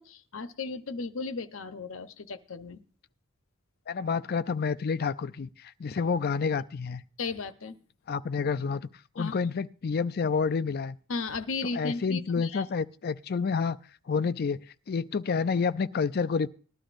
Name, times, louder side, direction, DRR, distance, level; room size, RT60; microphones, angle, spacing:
voice 1, 0.0-2.8 7.2-7.8 9.2-9.4 11.1-12.6, left 4 dB, 75° left, 0.8 m, -35 dB
voice 2, 3.9-7.0 8.1-8.9 9.2-11.0 11.7-13.8 14.1-14.6 14.9-16.5, left 5 dB, 50° left, 0.4 m, -29 dB
19.5 x 12.0 x 2.5 m
head